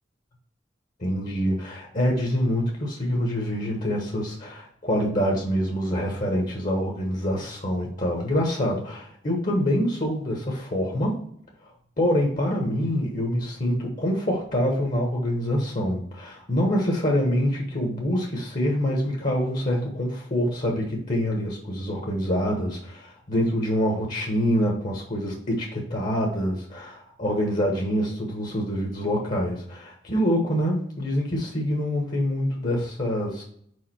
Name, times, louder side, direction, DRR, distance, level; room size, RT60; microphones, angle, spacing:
voice 1, 1.0-11.2 12.0-33.4, equal, 45° left, 0 dB, 1.2 m, -25 dB
5.1 x 4.9 x 4.4 m, 0.66 s
head